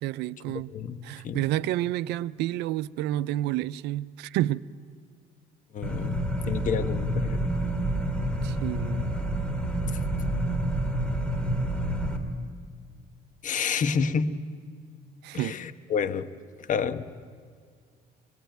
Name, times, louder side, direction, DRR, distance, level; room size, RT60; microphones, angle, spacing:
voice 1, 0.0-0.7 1.0-4.6 8.4-9.1 15.2-15.6, right 14 dB, 85° right, 0.6 m, -29 dB
voice 2, 0.5-1.4 5.7-6.2 6.5-7.4 13.4-14.3 15.3-16.3 16.7-17.0, left 6 dB, 50° left, 1.2 m, -29 dB
sound 1, 5.8-12.2, right 1 dB, 5° left, 3.2 m, -28 dB
25.5 x 21.5 x 9.2 m
cardioid pair, 110°, 17 cm